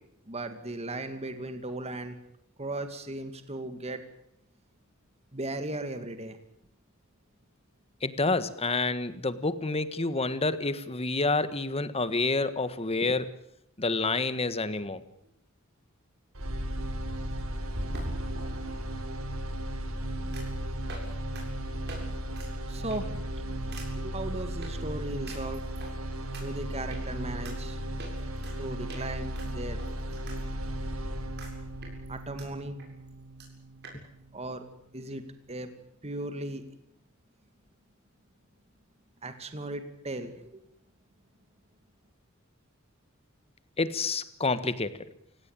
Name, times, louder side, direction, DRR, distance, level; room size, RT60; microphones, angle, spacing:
voice 1, 0.3-2.2 2.6-4.0 5.3-6.4 22.7-23.2 23.9-25.6 26.4-27.8 28.6-29.8 32.1-32.8 34.3-34.6 34.9-35.2 35.5-35.7 36.0-36.6 39.2-40.6, right 2 dB, 30° right, 8 dB, 2.3 m, -37 dB
voice 2, 8.0-13.3 13.8-15.0 43.8-45.0, left 3 dB, 30° left, 13 dB, 1.5 m, -28 dB
sound 1, 15.2-15.3 17.7-19.0 20.3-20.6 20.9-21.1 21.3-21.4 21.9-22.0 22.3-22.5 22.9-23.2 23.7-23.9 24.6-24.7 25.3-25.9 26.3-26.4 26.9-27.0 27.4-27.6 28.0-28.6 28.9-29.0 29.3-30.4 30.7-30.8 31.4-31.5 31.8-32.5 32.8-32.9 33.1-33.2 33.4-33.5 33.8-34.0, right 1 dB, 55° right, 7.7 m, -41 dB
sound 2, 16.3-34.4, right 1 dB, 80° right, 3.5 m, -36 dB
29.0 x 17.5 x 9.1 m, 0.75 s
head